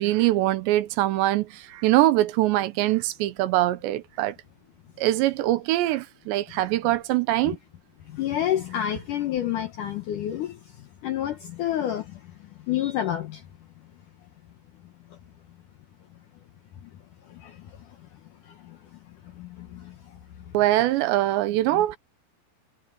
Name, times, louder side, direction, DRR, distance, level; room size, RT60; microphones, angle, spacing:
voice 1, 0.0-4.4 5.0-7.6 20.5-22.0, right 15 dB, 85° right, 3.1 m, -23 dB
voice 2, 8.1-10.6 11.0-12.2 12.7-13.4 17.3-17.6 18.6-18.8 19.4-20.0, left 11 dB, 75° left, 1.9 m, -28 dB
omnidirectional pair, 5.1 m